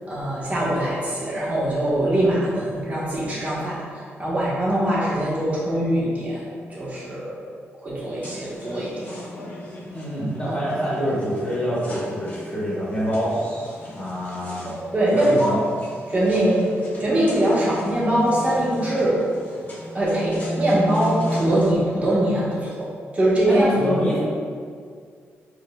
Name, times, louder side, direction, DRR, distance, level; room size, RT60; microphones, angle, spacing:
voice 1, 0.1-6.4 6.7-7.3 7.8-9.1 10.4-10.5 14.6-15.6 16.1-16.6 17.0-19.2 19.9-22.9 23.1-23.6 23.9-24.0, right 1 dB, 30° right, -9 dB, 1.2 m, -22 dB
sound 1, 8.2-21.7, equal, 35° left, 1.0 m, -34 dB
voice 2, 9.9-13.4 13.9-14.7 15.1-15.6 23.5-24.2, equal, 20° left, -8 dB, 1.3 m, -25 dB
4.6 x 2.4 x 2.2 m, 2.1 s
cardioid pair, 95°, 5 cm